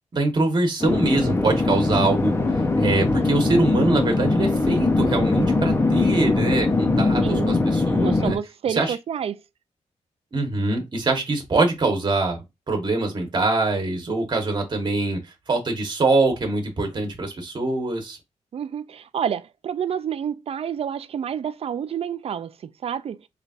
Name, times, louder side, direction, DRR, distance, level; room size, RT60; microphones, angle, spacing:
voice 1, 0.1-2.3 2.8-8.4 8.7-8.9 10.3-15.2 15.5-18.2, right 2 dB, 35° right, 1.2 m, -23 dB
sound 1, 0.8-8.4, left 3 dB, 20° left, 0.7 m, -21 dB
voice 2, 7.2-7.5 8.0-9.4 18.5-22.5 22.8-23.2, right 8 dB, 55° right, 0.3 m, -28 dB
4.0 x 3.3 x 2.5 m
wide cardioid pair, 130°, 12 cm